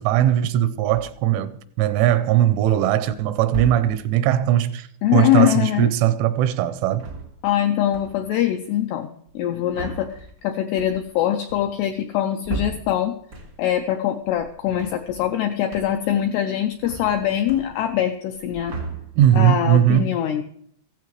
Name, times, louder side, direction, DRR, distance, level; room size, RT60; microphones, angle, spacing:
voice 1, 0.0-1.5 1.8-7.1 19.2-20.1, right 11 dB, 85° right, 3.1 m, -19 dB
sound 1, 0.9-1.4 2.2-2.7 3.4-4.2 6.8-7.6 7.9-8.4 9.3-13.8 14.2-15.4 15.7-16.2 16.5-18.1 18.3-19.5, right 2 dB, 70° right, 1.0 m, -37 dB
voice 2, 5.0-5.9 7.4-9.1 9.4-13.2 13.6-18.8 19.3-20.4, left 11 dB, 90° left, 2.3 m, -23 dB
15.0 x 15.0 x 3.2 m
omnidirectional pair, 5.5 m